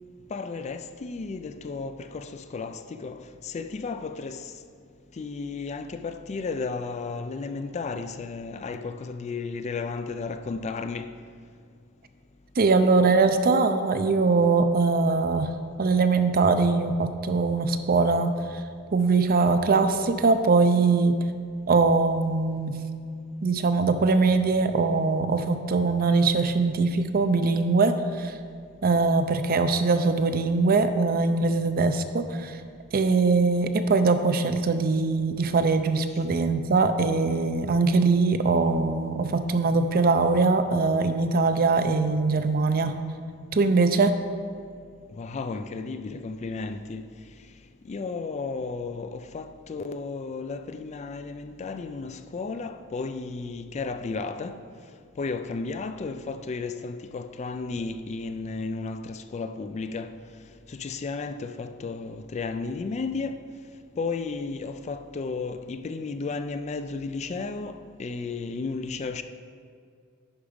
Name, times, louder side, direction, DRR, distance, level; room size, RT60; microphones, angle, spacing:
voice 1, 0.3-4.4 5.2-11.1 45.2-47.0 47.9-54.6 55.2-60.1 60.8-63.4 64.0-67.7 68.0-69.2, left 4 dB, 30° left, 0.3 m, -33 dB
voice 2, 12.6-15.5 15.8-18.3 18.9-21.1 21.7-22.7 23.4-28.3 28.8-32.6 32.9-43.0 43.5-44.1, right 3 dB, 45° right, 0.5 m, -22 dB
10.5 x 4.9 x 5.1 m
head